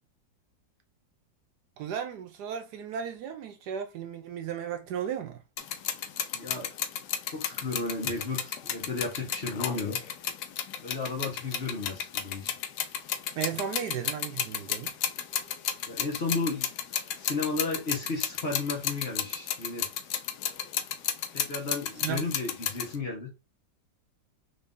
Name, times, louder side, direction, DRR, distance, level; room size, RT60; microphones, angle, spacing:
voice 1, 1.8-5.4 13.4-14.9 22.0-22.2, right 8 dB, 75° right, 1.1 m, -35 dB
sound 1, 5.6-23.0, left 9 dB, 75° left, 1.1 m, -33 dB
voice 2, 6.3-6.7 7.3-10.0 10.8-12.6 15.9-16.7 17.2-19.9 21.3-23.3, left 3 dB, 40° left, 1.0 m, -33 dB
3.8 x 2.7 x 3.5 m
omnidirectional pair, 2.0 m